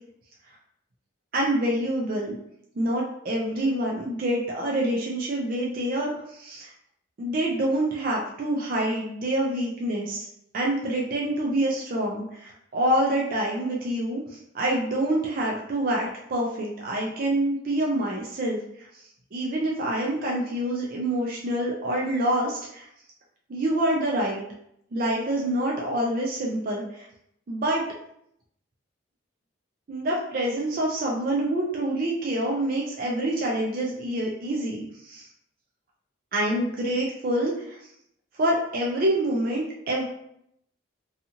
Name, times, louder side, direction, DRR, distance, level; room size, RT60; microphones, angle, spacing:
voice 1, 1.3-2.3 2.8-6.7 7.2-10.2 10.5-18.9 19.3-22.9 23.5-24.4 24.9-27.1 27.5-27.8 29.9-35.3 36.3-37.8 38.3-40.0, right 1 dB, 45° right, -2 dB, 0.4 m, -26 dB
2.7 x 2.4 x 2.8 m, 0.74 s
head